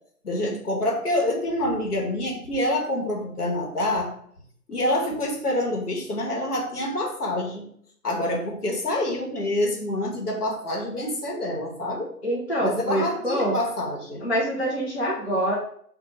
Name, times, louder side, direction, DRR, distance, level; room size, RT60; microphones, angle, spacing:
voice 1, 0.2-4.1 4.7-7.7 8.0-12.1 12.6-14.3, left 1 dB, 70° left, 1 dB, 1.0 m, -27 dB
voice 2, 12.2-13.6 14.2-15.6, equal, 45° left, -4 dB, 0.5 m, -25 dB
2.8 x 2.1 x 2.8 m, 0.64 s
figure-of-eight pair, 155°, 48 cm